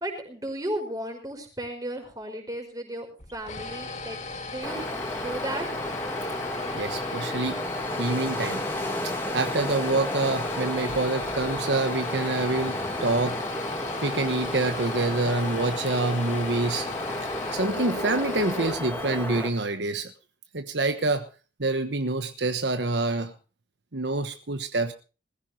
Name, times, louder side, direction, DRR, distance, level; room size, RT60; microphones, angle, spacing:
voice 1, 0.0-4.9 5.1-5.7, right 1 dB, 20° right, 3 dB, 5.0 m, -34 dB
sound 1, 3.2-19.4, left 3 dB, 40° left, 2.0 m, -36 dB
Wind, 4.6-19.5, left 1 dB, 10° left, 2.9 m, -33 dB
voice 2, 6.7-7.6 8.0-8.6 9.0-13.5 14.0-16.9 17.5-20.1 20.5-21.3 21.6-23.3 23.9-24.9, right 2 dB, 70° right, 8 dB, 1.2 m, -27 dB
20.5 x 15.5 x 2.9 m, 0.33 s
head